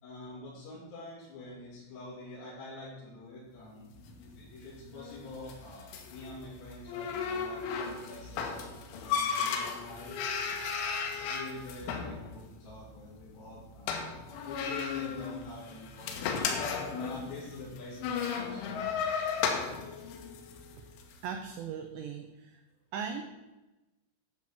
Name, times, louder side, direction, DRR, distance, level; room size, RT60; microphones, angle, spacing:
voice 1, 0.0-8.6 9.0-10.1 10.7-14.0 14.4-16.3 16.7-19.0, left 2 dB, 55° left, -8 dB, 4.8 m, -46 dB
sound 1, 3.9-21.2, left 6 dB, 75° left, 3.4 m, -35 dB
voice 2, 21.2-22.6 22.9-23.2, right 7 dB, 85° right, 5 dB, 2.5 m, -38 dB
11.5 x 5.9 x 7.4 m, 1.1 s
omnidirectional pair, 6.0 m